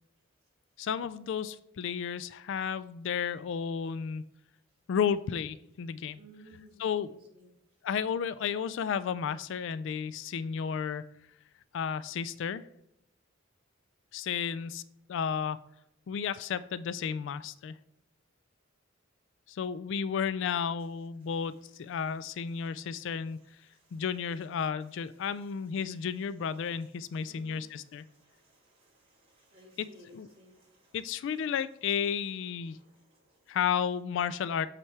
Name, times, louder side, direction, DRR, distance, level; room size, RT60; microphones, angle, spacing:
voice 1, 0.8-4.2 4.9-6.2 6.8-7.1 7.8-11.1 11.7-12.6 14.1-14.8 15.1-15.6 16.1-17.8 19.5-23.4 23.9-28.0 29.8-29.9 30.1-30.3 30.9-32.8 33.5-34.7, left 7 dB, 65° left, 14 dB, 0.3 m, -32 dB
voice 2, 6.2-6.7 7.0-7.5 21.2-21.3 21.9-22.0 22.5-24.0 25.2-26.2 26.6-31.4 32.6-33.6, right 1 dB, 30° right, -4 dB, 2.5 m, -60 dB
8.4 x 3.3 x 4.6 m, 0.81 s
head